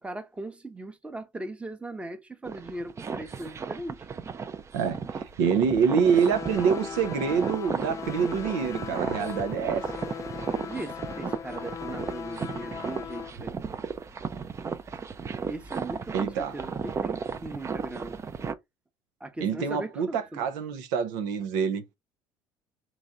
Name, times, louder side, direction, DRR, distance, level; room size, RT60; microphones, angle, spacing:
voice 1, 0.0-4.1 10.7-13.6 15.5-18.2 19.2-20.4, right 2 dB, 10° right, 0.9 m, -39 dB
sound 1, 2.4-18.5, right 5 dB, 30° right, 0.5 m, -35 dB
voice 2, 4.7-9.8 16.1-16.6 19.4-22.0, right 6 dB, 85° right, 0.7 m, -26 dB
sound 2, 5.9-13.3, left 7 dB, 30° left, 0.4 m, -38 dB
4.0 x 3.1 x 3.7 m
supercardioid pair, 95°, 10 cm